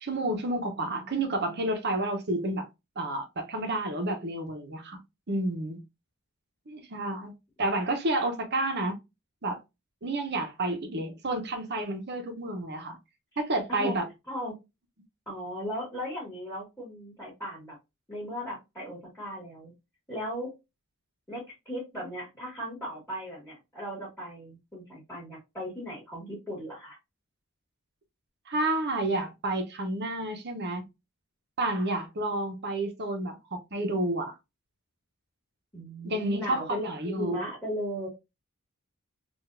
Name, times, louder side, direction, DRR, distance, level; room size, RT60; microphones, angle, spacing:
voice 1, 0.0-2.7 3.0-5.0 5.3-5.8 6.7-9.0 9.4-9.6 10.0-13.0 13.4-14.0 28.5-30.8 31.6-34.3 36.0-37.4, right 2 dB, 50° right, 0.9 m, -30 dB
voice 2, 0.6-1.7 13.7-13.9 14.3-14.5 15.3-17.8 18.1-19.7 20.1-20.5 21.3-27.0 35.7-38.1, equal, 5° left, 1.7 m, -37 dB
3.9 x 2.6 x 2.6 m
head